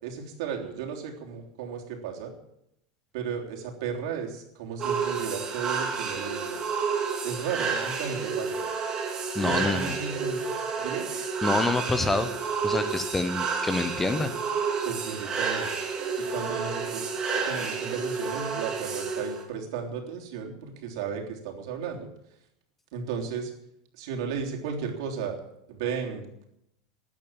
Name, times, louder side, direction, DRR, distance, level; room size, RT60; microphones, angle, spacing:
voice 1, 0.0-2.3 3.1-6.6 7.2-8.6 9.4-10.4 10.8-11.1 14.8-15.7 16.2-22.1 22.9-23.5 24.0-25.4 25.7-26.5, right 6 dB, 65° right, 1 dB, 3.4 m, -34 dB
sound 1, 4.8-19.4, right 5 dB, 20° right, 2.6 m, -30 dB
voice 2, 9.4-10.0 11.4-12.3 12.6-14.3, left 2 dB, 10° left, 11 dB, 0.6 m, -27 dB
13.5 x 9.0 x 8.9 m, 0.78 s
supercardioid pair, 170°, 3 cm